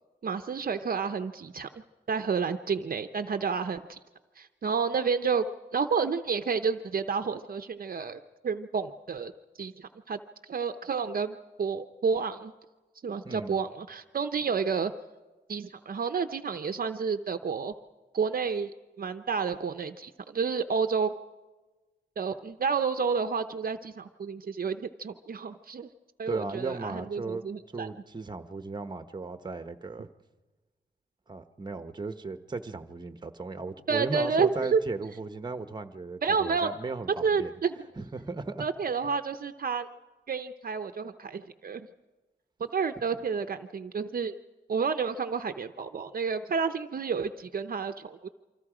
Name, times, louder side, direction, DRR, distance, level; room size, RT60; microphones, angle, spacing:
voice 1, 0.2-1.8 2.1-4.0 4.4-5.5 5.7-9.3 9.6-12.5 13.0-14.9 15.5-17.7 18.1-18.7 19.0-21.1 22.2-25.9 26.2-27.9 33.9-34.8 36.2-36.7 37.2-37.7 38.6-39.9 40.3-41.9 42.6-44.3 44.7-48.3, right 5 dB, 50° right, 8 dB, 0.7 m, -30 dB
voice 2, 13.2-13.6 26.3-27.4 27.7-30.1 31.3-37.5 38.0-38.7, right 3 dB, 25° right, 9 dB, 1.0 m, -36 dB
28.0 x 25.0 x 5.0 m, 1.2 s
wide cardioid pair, 155°, 19 cm